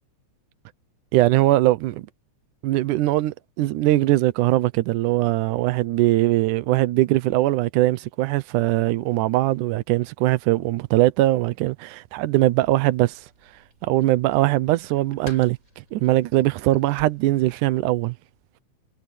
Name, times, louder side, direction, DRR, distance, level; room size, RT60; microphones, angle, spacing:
voice 1, 1.1-2.1 2.6-13.3 13.8-18.1, right 16 dB, 85° right, 2.3 m, -21 dB
sound 1, 12.6-17.9, equal, 25° right, 8.3 m, -48 dB
omnidirectional pair, 3.5 m